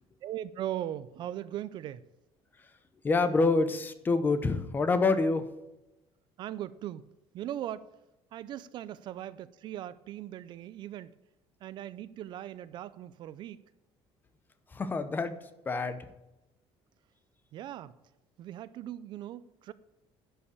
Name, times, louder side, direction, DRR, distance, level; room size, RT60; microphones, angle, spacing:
voice 1, 0.2-2.1 6.4-7.1 7.3-7.8 8.3-11.1 11.6-13.6 17.5-18.0 18.4-19.7, right 12 dB, 45° right, 0.4 m, -39 dB
voice 2, 3.0-5.5 14.7-15.3 15.7-16.0, left 3 dB, 15° left, 0.7 m, -26 dB
11.0 x 5.5 x 8.4 m
cardioid pair, 175°, 11 cm